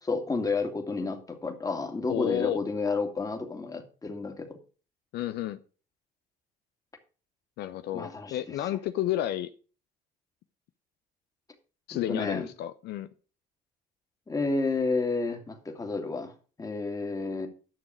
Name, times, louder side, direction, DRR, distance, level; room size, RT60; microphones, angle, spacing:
voice 1, 0.0-4.6 7.9-8.4 12.1-12.5 14.3-16.3 16.6-17.5, left 3 dB, 20° left, 5 dB, 2.3 m, -30 dB
voice 2, 2.1-2.6 5.1-5.6 7.6-9.5 11.9-13.1, left 12 dB, 80° left, 11 dB, 0.7 m, -31 dB
10.5 x 6.6 x 6.3 m, 0.37 s
cardioid pair, 110°, 17 cm